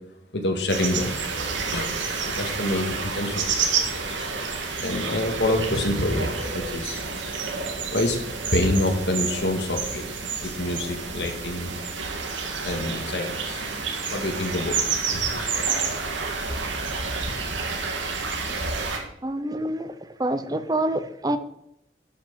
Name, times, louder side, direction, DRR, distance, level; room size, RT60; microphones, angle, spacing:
voice 1, 0.3-1.1 1.7-4.2 4.8-7.1 7.9-8.2 8.5-10.0 10.4-11.7 12.6-13.7 14.1-15.7, left 1 dB, 70° left, 1.8 m, -27 dB
sound 1, 0.7-19.0, right 5 dB, 85° right, 1.8 m, -29 dB
sound 2, 2.7-2.8 4.2-4.4 5.7-5.9 7.2-7.3 8.5-8.7 10.4-10.9 12.7-13.0 14.1-14.2, right 1 dB, 5° right, 2.8 m, -46 dB
voice 2, 19.2-19.9 20.2-21.4, right 1 dB, 20° right, 0.6 m, -26 dB
11.5 x 5.9 x 5.8 m
head